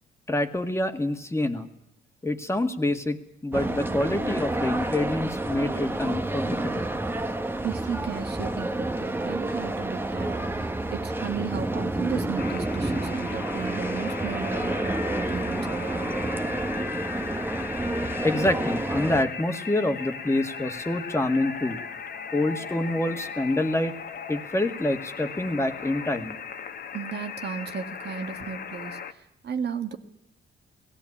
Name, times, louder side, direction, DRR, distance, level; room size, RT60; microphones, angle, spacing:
voice 1, 0.3-1.7 2.2-6.9 18.2-21.8 22.3-24.0 24.3-26.4, left 1 dB, 15° left, 6 dB, 2.0 m, -26 dB
sound 1, 3.5-19.2, right 2 dB, 10° right, 1.3 m, -29 dB
voice 2, 7.6-16.1 26.9-30.0, right 6 dB, 55° right, 6 dB, 1.8 m, -34 dB
sound 2, 12.4-29.1, left 6 dB, 55° left, 1.5 m, -37 dB
18.5 x 16.5 x 8.7 m, 0.82 s
cardioid pair, 90°, 20 cm